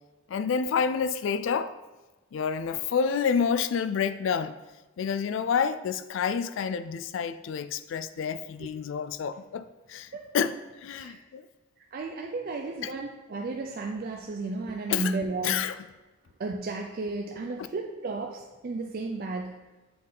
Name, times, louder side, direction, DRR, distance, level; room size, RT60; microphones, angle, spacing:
voice 1, 0.3-1.7 2.3-4.5 5.0-10.5 10.8-11.4 12.8-12.9 14.9-15.2 15.4-15.8, left 6 dB, 65° left, 0.3 m, -28 dB
voice 2, 11.9-15.7 16.4-19.6, right 3 dB, 45° right, 0.4 m, -33 dB
7.6 x 3.6 x 3.9 m
head